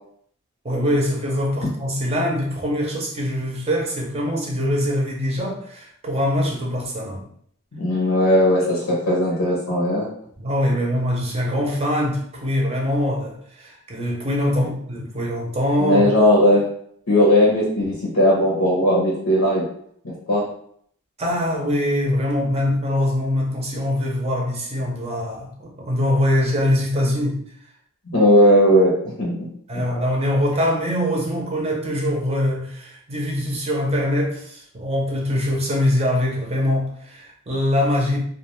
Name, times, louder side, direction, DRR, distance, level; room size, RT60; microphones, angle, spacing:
voice 1, 0.6-7.2 10.4-16.0 21.2-27.4 29.7-38.2, left 1 dB, 30° right, -1 dB, 0.6 m, -23 dB
voice 2, 7.8-10.1 15.8-16.7 17.1-19.6 20.0-20.5 28.1-29.5, equal, 90° left, -4 dB, 0.8 m, -17 dB
2.4 x 2.2 x 3.0 m, 0.65 s
head